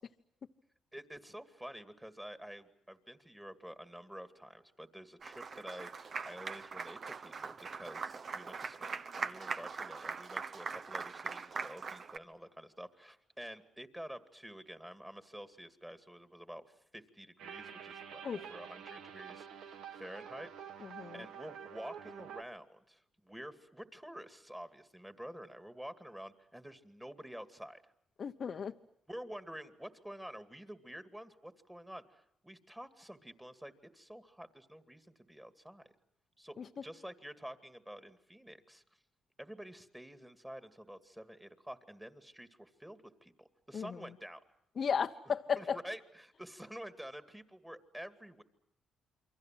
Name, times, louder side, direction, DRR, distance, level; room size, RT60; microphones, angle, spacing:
voice 1, 0.9-20.5 20.8-27.8 28.6-28.7 29.1-35.9 36.4-36.6 36.8-38.8 39.4-44.4 45.6-48.4, equal, 5° right, 11 dB, 2.4 m, -49 dB
Applause, 5.2-12.2, right 5 dB, 45° right, 1.3 m, -41 dB
sound 1, 17.4-22.4, right 8 dB, 80° right, 1.9 m, -48 dB
voice 2, 20.8-21.2 28.2-28.7 36.6-36.7 43.7-44.0 44.8-45.8, left 6 dB, 50° left, 5 dB, 1.0 m, -35 dB
28.0 x 24.0 x 7.7 m, 0.74 s
cardioid pair, 90°, 0 cm